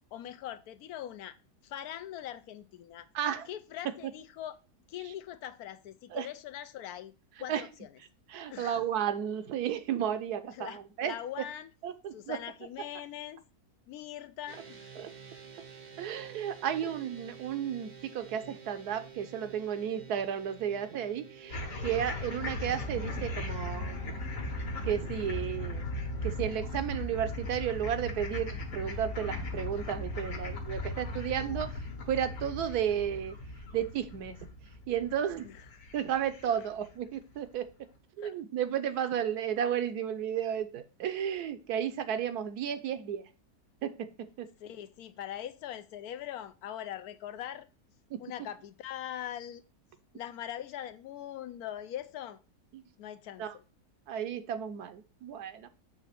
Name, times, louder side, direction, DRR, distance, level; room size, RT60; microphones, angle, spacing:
voice 1, 0.1-1.4 1.6-3.1 3.5-4.6 4.9-7.1 7.4-7.9 8.5-8.8 10.5-11.7 12.1-13.4 13.9-15.1 16.8-16.9 35.4-35.6 36.5-36.6 38.2-38.4 44.6-47.7 48.2-49.6 50.1-52.4 53.0-53.6, left 11 dB, 75° left, 1.1 m, -42 dB
voice 2, 3.1-3.5 4.0-4.1 6.1-6.3 7.5-7.6 8.3-11.2 11.8-12.4 15.0-15.1 16.0-24.3 24.8-25.9 26.2-33.4 33.7-34.4 34.9-35.5 35.9-37.7 38.2-43.2 43.8-43.9 44.4-44.5 48.1-48.2 52.7-52.8 53.4-53.5 54.1-55.7, right 9 dB, 75° right, 1.3 m, -33 dB
sound 1, 14.5-26.6, right 6 dB, 45° right, 0.6 m, -51 dB
sound 2, 21.5-36.9, left 1 dB, 60° left, 1.6 m, -38 dB
7.1 x 3.4 x 5.8 m
omnidirectional pair, 1.7 m